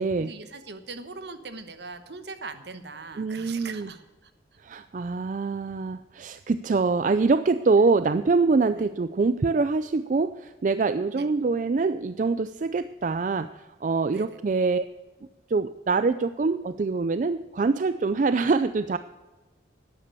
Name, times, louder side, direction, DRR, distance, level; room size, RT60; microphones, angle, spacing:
voice 1, 0.2-4.3 8.7-8.9 11.1-11.3 14.1-14.4, right 4 dB, 65° right, 9 dB, 1.2 m, -41 dB
voice 2, 3.2-3.9 4.6-14.9 15.5-19.0, right 4 dB, 45° right, 12 dB, 0.4 m, -24 dB
12.0 x 10.0 x 6.7 m, 1.2 s
head